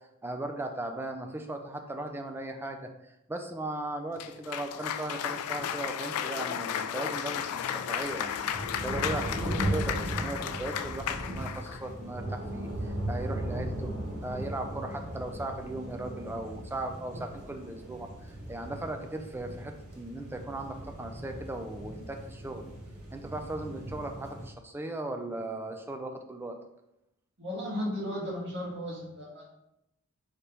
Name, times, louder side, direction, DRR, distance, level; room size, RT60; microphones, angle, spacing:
voice 1, 0.2-13.9 14.2-22.6 23.1-26.6, right 2 dB, 10° right, 5 dB, 0.3 m, -38 dB
Cheering / Applause, 4.2-11.8, left 9 dB, 75° left, 0.3 m, -34 dB
sound 1, 7.2-24.5, right 1 dB, 70° right, 1.1 m, -37 dB
voice 2, 27.4-29.5, equal, 55° right, -4 dB, 1.5 m, -35 dB
5.2 x 3.4 x 2.9 m, 0.85 s
head